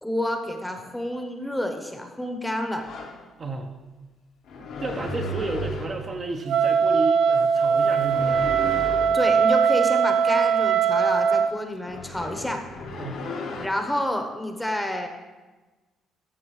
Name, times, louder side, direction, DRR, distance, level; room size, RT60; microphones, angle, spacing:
voice 1, 0.0-2.9 9.1-12.6 13.6-15.1, left 1 dB, 5° left, 5 dB, 0.9 m, -29 dB
sound 1, 2.8-3.2 4.5-6.1 8.0-9.2 11.8-13.7, left 2 dB, 75° left, 1.3 m, -34 dB
voice 2, 3.4-3.7 4.8-8.4 13.0-13.2, right 3 dB, 35° right, 3 dB, 0.7 m, -32 dB
Wind instrument woodwind instrument, 6.5-11.5, right 6 dB, 70° right, 0.5 m, -21 dB
13.0 x 6.4 x 3.2 m, 1.2 s
cardioid pair, 105°, 0 cm